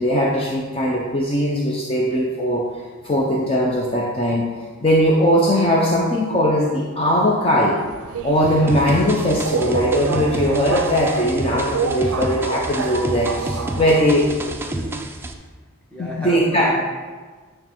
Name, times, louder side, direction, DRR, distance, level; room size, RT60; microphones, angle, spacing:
voice 1, 0.0-2.7 3.0-4.5 4.8-7.8 8.2-14.3 16.0-16.7, equal, 25° left, -3 dB, 0.7 m, -19 dB
Subway metro underground, 7.8-14.6, right 5 dB, 80° right, 0.5 m, -28 dB
sound 1, 8.7-15.3, right 1 dB, 10° right, 0.4 m, -30 dB
voice 2, 13.7-15.1 15.9-16.7, equal, 5° left, -3 dB, 1.3 m, -33 dB
9.2 x 3.3 x 6.0 m, 1.4 s
head